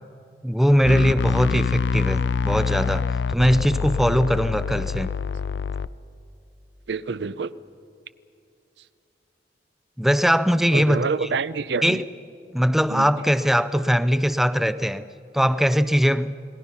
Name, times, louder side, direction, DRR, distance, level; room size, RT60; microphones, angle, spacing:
voice 1, 0.4-5.1 10.0-11.0 11.8-12.0 12.5-15.1 15.3-16.3, equal, ahead, 0.4 m, -21 dB
sound 1, 0.8-5.9, left 5 dB, 80° left, 0.5 m, -25 dB
voice 2, 6.9-7.5 10.7-12.0 12.9-13.1, right 4 dB, 75° right, 0.6 m, -27 dB
29.0 x 19.5 x 5.7 m
head